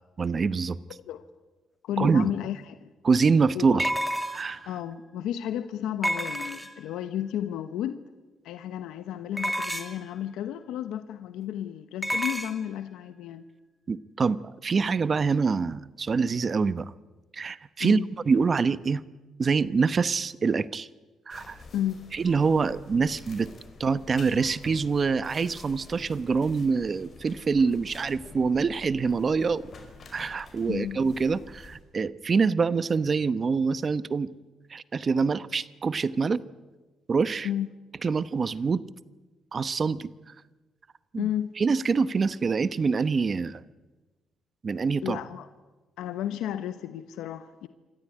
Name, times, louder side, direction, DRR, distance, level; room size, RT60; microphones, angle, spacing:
voice 1, 0.2-0.8 2.0-2.3 3.0-3.9 4.3-4.6 13.9-16.9 17.3-18.0 18.2-19.0 19.4-20.9 21.3-21.6 22.1-23.5 23.8-29.7 30.1-34.3 34.7-36.4 37.1-37.5 38.0-38.8 39.5-40.1 41.1-41.3 41.6-43.6 44.6-45.2, right 5 dB, 40° right, 16 dB, 0.9 m, -25 dB
voice 2, 0.9-1.2 1.8-2.9 3.5-3.8 4.7-8.0 8.4-13.4 17.8-18.1 21.7-22.1 30.7-31.1 37.4-37.7 41.2-41.5 45.0-45.5 46.0-47.7, left 11 dB, 90° left, 11 dB, 1.0 m, -33 dB
sound 1, 2.2-2.3 3.8-4.6 6.0-6.9 9.4-10.1 12.0-12.5, equal, ahead, 2.0 m, -29 dB
sound 2, 21.3-31.8, left 3 dB, 45° left, 5.1 m, -48 dB
26.5 x 14.0 x 9.7 m, 1.2 s
cardioid pair, 90°, 0 cm